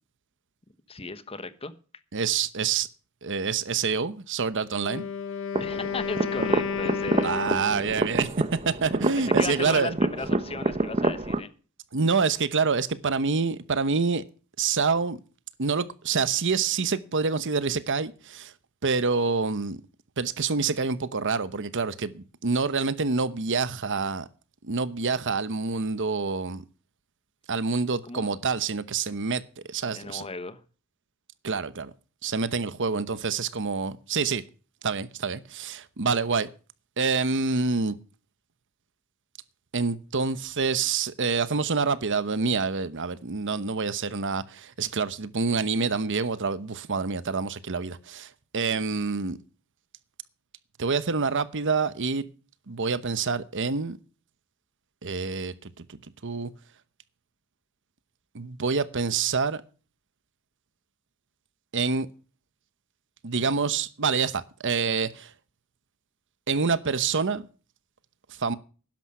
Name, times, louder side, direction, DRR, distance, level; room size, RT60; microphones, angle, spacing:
voice 1, 0.9-1.7 5.6-7.3 9.3-11.5 28.0-28.4 29.9-30.6, left 3 dB, 25° left, 1.1 m, -36 dB
voice 2, 2.1-2.9 3.2-5.0 7.2-10.0 11.9-14.2 14.6-15.2 15.6-18.5 18.8-19.8 20.2-24.3 24.6-26.6 27.5-29.4 29.7-30.3 31.4-31.9 32.2-34.4 34.8-36.5 37.0-38.0 39.7-49.4 50.8-52.3 52.7-54.0 55.0-56.5 58.3-59.6 61.7-62.1 63.2-65.3 66.5-67.5 68.3-68.6, right 5 dB, 60° right, 1.0 m, -27 dB
Wind instrument woodwind instrument, 4.7-8.2, left 6 dB, 60° left, 1.0 m, -32 dB
sound 1, 5.5-11.4, right 2 dB, 30° right, 0.9 m, -28 dB
12.5 x 10.5 x 5.6 m
head